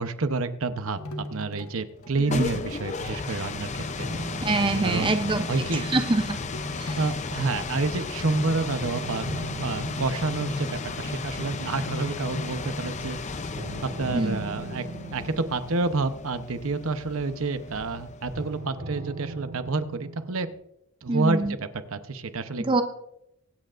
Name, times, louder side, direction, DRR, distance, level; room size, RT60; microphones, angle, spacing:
voice 1, 0.0-4.1 4.8-5.8 7.0-9.2 9.6-13.2 13.8-14.8 15.1-20.5 21.0-22.6, right 3 dB, 70° right, 10 dB, 0.8 m, -29 dB
sound 1, 1.0-2.2 2.6-2.7 3.1-3.2 3.5-3.8 4.2-4.3 4.5-4.6 4.9-5.5 5.7-5.8 6.2-7.3 7.6-7.7 8.0-12.8, left 1 dB, 75° left, 1.2 m, -39 dB
sound 2, 2.0-18.7, left 3 dB, 30° left, 0.5 m, -34 dB
sound 3, 4.0-8.4 8.8-12.0 13.5-17.5 18.3-20.5, right 2 dB, 45° right, 2.6 m, -40 dB
voice 2, 4.4-5.4 5.7-6.2 6.8-7.0 14.1-14.4 21.1-21.5 22.6-22.8, right 2 dB, 20° right, 7 dB, 0.6 m, -25 dB
23.5 x 9.1 x 2.5 m, 0.79 s
head